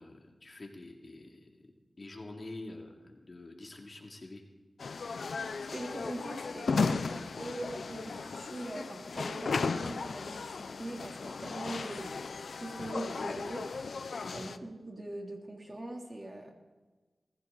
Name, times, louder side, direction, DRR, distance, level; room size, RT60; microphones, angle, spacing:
voice 1, 0.0-1.5 2.0-4.4 14.2-14.4, left 2 dB, 50° left, 2 dB, 2.7 m, -46 dB
sound 1, 4.8-14.6, left 4 dB, 80° left, 0.6 m, -35 dB
voice 2, 5.7-12.1 12.6-13.6 14.3-16.5, right 1 dB, 35° right, 1 dB, 3.3 m, -42 dB
20.0 x 15.5 x 4.1 m, 1.3 s
cardioid pair, 45°, 0 cm